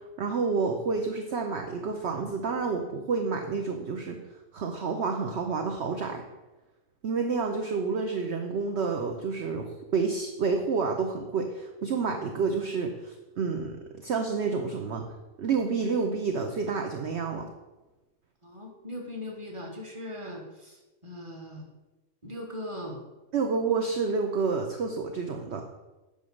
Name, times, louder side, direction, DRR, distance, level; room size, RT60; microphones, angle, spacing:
voice 1, 0.0-4.2 4.5-6.2 7.0-15.0 15.4-17.5 23.3-25.7, right 4 dB, 55° right, 4 dB, 1.0 m, -29 dB
voice 2, 18.4-21.6 22.2-23.0, left 1 dB, 20° right, 0 dB, 1.8 m, -39 dB
9.3 x 5.5 x 6.4 m, 1.1 s
omnidirectional pair, 1.5 m